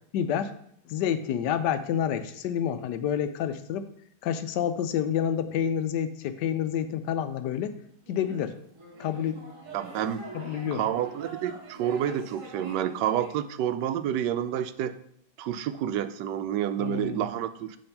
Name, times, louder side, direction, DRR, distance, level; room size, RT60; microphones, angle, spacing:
voice 1, 0.1-0.5 0.9-3.9 4.2-7.8 8.1-8.5 9.0-9.4 10.3-10.9 16.8-17.3, left 9 dB, 80° left, 10 dB, 1.2 m, -28 dB
sound 1, 8.1-13.4, right 3 dB, 50° right, 1.6 m, -44 dB
voice 2, 9.7-10.2 10.7-14.9 15.4-17.8, right 10 dB, 85° right, 11 dB, 1.2 m, -29 dB
8.5 x 3.5 x 5.8 m, 0.69 s
omnidirectional pair, 1.8 m